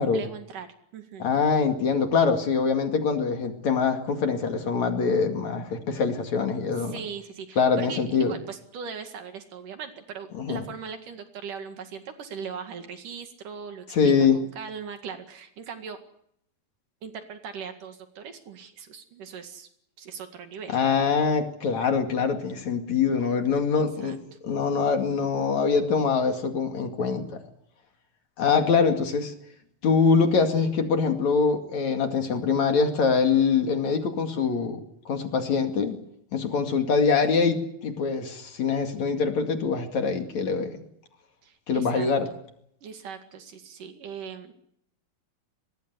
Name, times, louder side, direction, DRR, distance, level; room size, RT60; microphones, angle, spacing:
voice 1, 0.0-1.3 6.8-16.0 17.0-19.7 20.0-20.8 23.1-23.3 23.8-24.2 36.5-36.8 41.4-42.1 42.8-44.5, right 6 dB, 65° right, 7 dB, 3.5 m, -39 dB
voice 2, 1.2-6.9 7.6-8.3 10.3-10.6 13.9-14.4 20.7-27.4 28.4-29.3 29.8-34.8 35.1-36.0 36.3-40.8 41.7-42.3, left 5 dB, 55° left, 5 dB, 3.4 m, -24 dB
24.0 x 21.0 x 8.1 m, 0.73 s
omnidirectional pair, 4.2 m